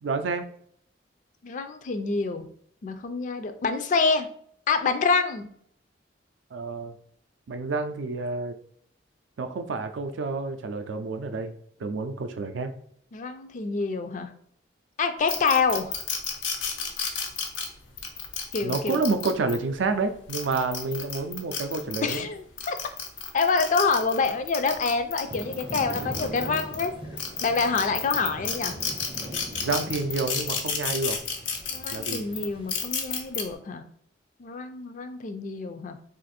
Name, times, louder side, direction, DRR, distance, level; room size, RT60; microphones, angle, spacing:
voice 1, 0.0-0.5 6.5-6.9 7.5-8.6 9.4-11.5 11.8-12.7 18.6-22.3 29.6-31.2 31.9-32.2, right 3 dB, 80° right, 8 dB, 0.4 m, -29 dB
voice 2, 1.4-2.5 2.8-4.3 4.7-5.5 13.1-14.3 15.0-16.0 18.5-19.0 22.0-22.8 23.3-26.9 27.4-28.8 31.7-33.8 34.4-36.0, left 4 dB, 45° left, 8 dB, 0.3 m, -26 dB
sound 1, 15.3-19.6 20.1-22.2 22.6-26.9 27.2-33.4, left 6 dB, 90° left, 0.6 m, -31 dB
Thunder / Rain, 25.2-32.8, right 1 dB, 30° right, 0.5 m, -41 dB
2.5 x 2.5 x 4.1 m, 0.64 s
head